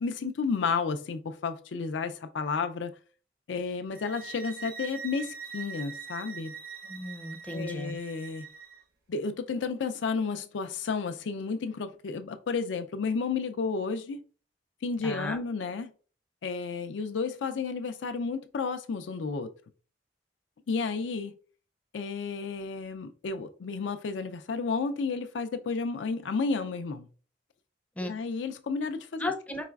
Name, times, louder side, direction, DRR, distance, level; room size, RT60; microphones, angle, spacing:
voice 1, 0.0-2.9 3.5-6.5 7.5-8.5 9.1-14.2 14.8-15.9 16.4-19.5 20.7-21.3 21.9-27.1 28.0-29.3, left 4 dB, 80° left, 0.4 m, -32 dB
sound 1, 3.9-8.8, right 6 dB, 55° right, 0.9 m, -43 dB
voice 2, 6.9-8.0 15.0-15.4 28.0-28.1 29.2-29.7, left 1 dB, 10° left, 0.5 m, -35 dB
4.8 x 3.1 x 2.3 m
head